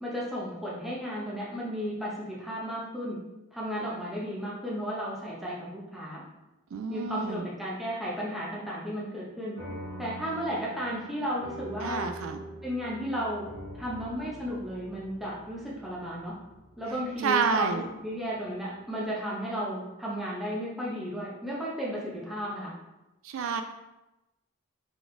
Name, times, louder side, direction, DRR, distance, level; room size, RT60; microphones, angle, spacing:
voice 1, 0.0-3.2 3.5-6.2 6.9-9.6 10.0-12.1 12.6-13.5 13.7-16.3 16.8-22.7, equal, ahead, -7 dB, 1.0 m, -34 dB
voice 2, 6.7-7.5 11.8-12.4 17.2-17.8 23.2-23.6, right 5 dB, 70° right, 7 dB, 0.3 m, -29 dB
sound 1, 9.5-18.3, right 1 dB, 55° right, 1.3 m, -44 dB
4.1 x 3.6 x 3.3 m, 0.99 s
head